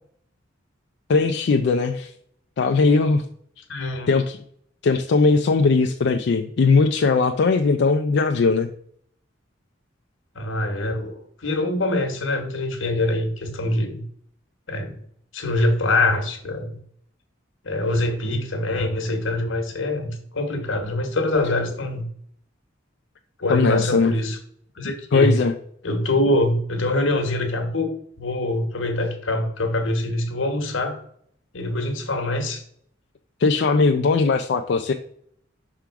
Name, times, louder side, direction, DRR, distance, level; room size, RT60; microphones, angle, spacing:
voice 1, 1.1-2.1 2.6-3.2 4.1-4.4 4.8-8.7 23.5-24.1 25.1-25.5 33.4-34.9, left 4 dB, 60° left, 5 dB, 0.4 m, -19 dB
voice 2, 3.7-4.1 10.3-14.0 14.7-15.0 15.3-16.8 17.6-22.1 23.4-24.4 24.7-25.4 25.8-27.9 28.2-31.0 31.5-32.6, left 1 dB, 85° left, 5 dB, 1.2 m, -24 dB
5.8 x 3.7 x 4.6 m, 0.65 s
head